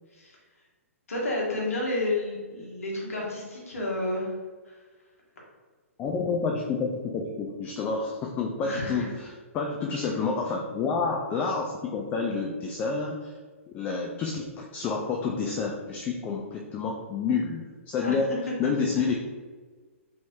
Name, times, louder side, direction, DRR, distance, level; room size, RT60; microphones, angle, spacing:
voice 1, 1.1-4.3 4.7-4.8 8.6-9.1 9.8-10.1 16.2-16.4 18.0-18.2, left 2 dB, 75° left, -3 dB, 1.2 m, -31 dB
voice 2, 6.0-13.4 13.7-18.3 18.6-19.1, left 4 dB, 20° left, 0 dB, 0.3 m, -29 dB
3.1 x 3.0 x 2.7 m, 1.4 s
figure-of-eight pair, 125°, 8 cm